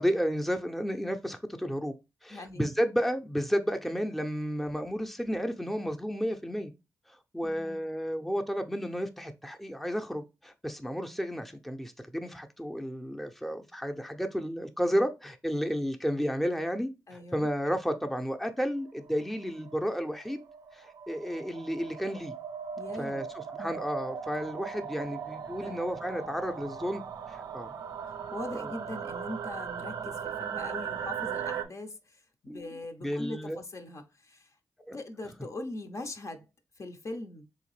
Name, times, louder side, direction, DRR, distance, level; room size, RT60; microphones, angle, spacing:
voice 1, 0.0-1.9 2.2-6.7 7.1-20.4 20.7-22.3 22.9-27.0 27.3-27.7 28.5-28.7 32.5-33.6 34.9-35.0, equal, ahead, 0.6 m, -32 dB
voice 2, 2.3-2.7 7.4-7.8 17.1-17.5 22.8-23.2 23.6-23.8 25.6-25.8 28.3-34.6 34.9-36.4 36.8-37.4, left 2 dB, 55° left, 0.7 m, -41 dB
sound 1, 18.8-31.6, right 7 dB, 90° right, 0.4 m, -39 dB
3.5 x 2.8 x 3.1 m
cardioid pair, 45°, 6 cm